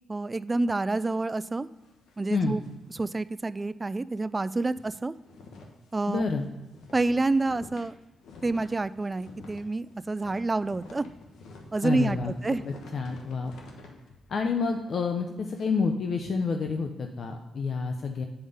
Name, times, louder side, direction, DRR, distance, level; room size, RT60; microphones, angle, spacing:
voice 1, 0.1-1.7 2.2-2.6 2.9-5.1 5.9-6.2 6.9-7.9 8.4-11.1 11.7-12.6, right 2 dB, 25° right, 16 dB, 0.4 m, -28 dB
sound 1, 1.4-3.7 4.0-4.1 4.5-15.6, left 3 dB, 85° left, 1.1 m, -50 dB
voice 2, 6.1-6.4 11.8-13.5 14.3-18.3, left 4 dB, 60° left, 4 dB, 0.7 m, -29 dB
8.0 x 5.0 x 5.5 m, 1.1 s
cardioid pair, 75°, 0 cm